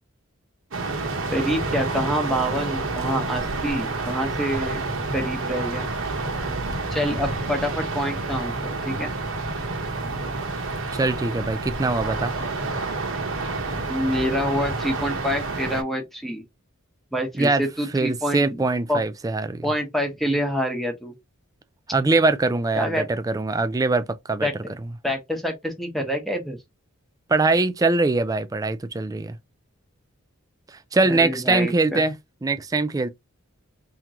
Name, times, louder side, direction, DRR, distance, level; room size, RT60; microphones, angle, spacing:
sound 1, 0.7-15.8, right 3 dB, 65° right, 1.1 m, -29 dB
voice 1, 1.3-5.9 6.9-9.1 13.9-16.4 17.1-19.0 19.6-21.1 22.7-23.0 24.4-24.7 25.0-26.6 31.0-32.0, equal, ahead, 1.0 m, -27 dB
voice 2, 10.9-12.3 17.4-17.6 17.9-19.7 21.9-24.5 27.3-29.4 30.9-32.2 32.4-33.1, right 3 dB, 15° right, 0.4 m, -22 dB
3.7 x 2.9 x 2.9 m
head